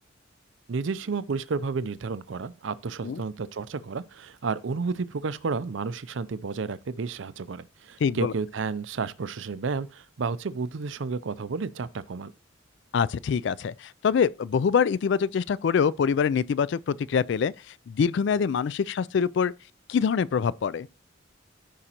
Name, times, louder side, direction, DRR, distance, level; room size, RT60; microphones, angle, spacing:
voice 1, 0.7-12.3, right 4 dB, 70° right, 0.5 m, -31 dB
voice 2, 8.0-8.3 12.9-17.5 17.9-19.5 19.9-20.9, left 6 dB, 60° left, 0.3 m, -24 dB
14.0 x 5.0 x 2.9 m
head